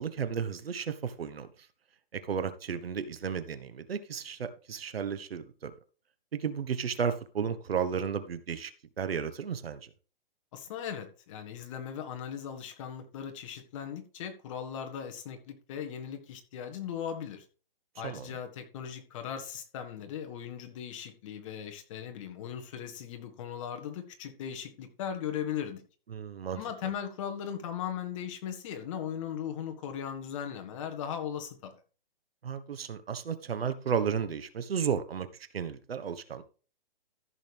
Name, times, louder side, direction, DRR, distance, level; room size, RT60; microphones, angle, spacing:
voice 1, 0.0-1.5 2.1-5.7 6.3-8.7 9.0-9.8 18.0-18.3 26.1-26.6 32.4-35.3 35.5-36.4, right 7 dB, 85° right, 1.3 m, -33 dB
voice 2, 10.5-17.4 18.0-25.8 26.5-31.7, left 8 dB, 35° left, 1.6 m, -38 dB
14.0 x 6.6 x 3.5 m
hypercardioid pair, 160°, 29 cm